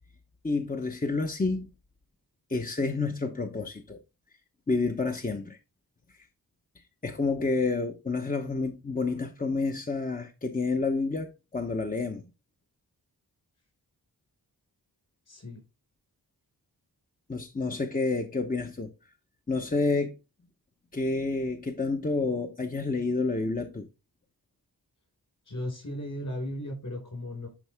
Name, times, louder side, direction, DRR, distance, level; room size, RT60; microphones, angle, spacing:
voice 1, 0.4-1.7 2.5-4.0 4.7-5.6 7.0-12.2 17.3-18.9 19.5-20.1 20.9-23.9, left 3 dB, 20° left, 0.9 m, -29 dB
voice 2, 15.3-15.6 25.5-27.5, left 1 dB, 50° left, 5.0 m, -36 dB
11.0 x 4.7 x 3.5 m
wide cardioid pair, 85°, 38 cm